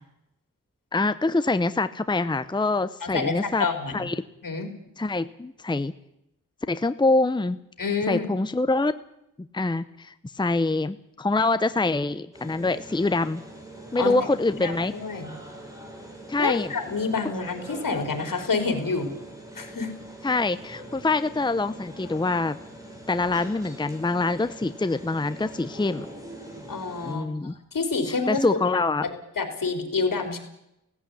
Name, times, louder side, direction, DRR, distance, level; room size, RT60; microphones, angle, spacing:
voice 1, 0.9-3.7 3.9-4.1 5.0-5.9 6.7-7.6 8.1-8.9 9.5-13.4 13.9-14.9 16.3-16.7 20.2-22.6 23.1-26.1 27.0-27.5 28.3-29.1, left 3 dB, 15° left, 12 dB, 0.7 m, -25 dB
voice 2, 3.0-4.0 4.4-4.7 7.8-8.3 13.9-14.2 14.6-15.3 16.4-19.1 19.6-19.9 26.7-27.2 27.7-28.6 29.0-29.1 29.4-30.4, left 4 dB, 75° left, 6 dB, 4.1 m, -28 dB
sound 1, 12.3-27.1, right 1 dB, 10° right, 5.3 m, -43 dB
17.0 x 16.5 x 9.8 m, 0.81 s
wide cardioid pair, 110°, 33 cm